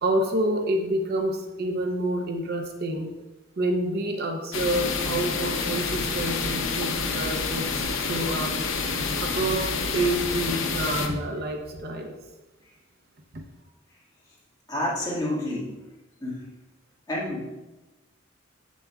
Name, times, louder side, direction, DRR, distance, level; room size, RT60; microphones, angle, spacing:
voice 1, 0.0-3.1 3.6-8.6 9.2-12.2, right 1 dB, 50° right, 3 dB, 0.7 m, -28 dB
sound 1, 4.5-11.1, left 4 dB, 85° left, 0.7 m, -28 dB
voice 2, 14.7-15.7 16.2-16.5 17.1-17.5, left 1 dB, 20° left, -6 dB, 1.9 m, -29 dB
7.2 x 6.8 x 2.3 m, 1.1 s
head